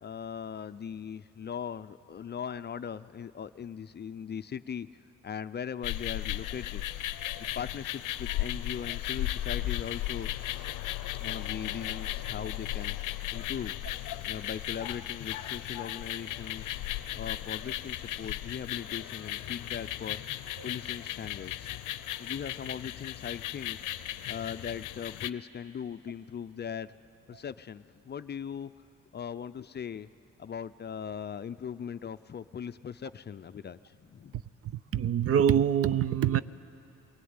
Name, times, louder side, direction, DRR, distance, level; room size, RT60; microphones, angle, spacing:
voice 1, 0.0-4.9 5.2-6.8 7.6-10.3 11.2-13.0 13.3-13.8 14.2-16.8 17.2-20.2 20.6-21.8 22.2-23.9 24.3-27.0 27.3-28.7 29.1-30.1 30.4-34.4, left 7 dB, 35° left, 0.5 m, -39 dB
sound 1, 5.8-25.3, left 14 dB, 85° left, 0.6 m, -36 dB
voice 2, 34.3-36.4, right 9 dB, 50° right, 0.5 m, -26 dB
22.0 x 16.5 x 9.6 m
cardioid pair, 90°, 30 cm